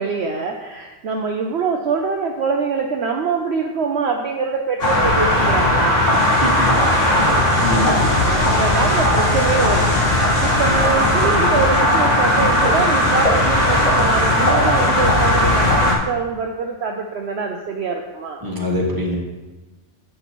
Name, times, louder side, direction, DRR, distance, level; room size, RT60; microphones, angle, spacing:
voice 1, 0.0-6.0 7.7-18.4, right 5 dB, 65° right, 2 dB, 0.9 m, -24 dB
sound 1, 4.8-15.9, left 1 dB, 75° left, 2.1 m, -17 dB
voice 2, 6.4-6.8 7.6-8.0 18.4-19.2, equal, 15° right, -3 dB, 1.8 m, -23 dB
10.5 x 7.8 x 3.0 m, 1.2 s
omnidirectional pair, 1.3 m